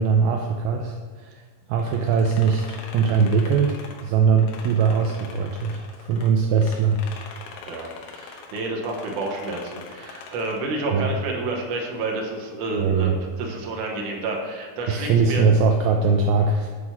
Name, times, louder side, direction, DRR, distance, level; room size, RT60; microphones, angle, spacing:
voice 1, 0.0-1.4 1.7-7.0 10.9-11.1 12.7-13.2 14.9-16.7, right 5 dB, 85° right, 3 dB, 2.2 m, -21 dB
sound 1, 1.8-6.3 6.6-10.7, left 5 dB, 85° left, 3.1 m, -42 dB
voice 2, 7.7-13.1 13.4-15.4, right 2 dB, 65° right, 0 dB, 2.2 m, -29 dB
8.1 x 4.8 x 5.9 m, 1.5 s
omnidirectional pair, 4.9 m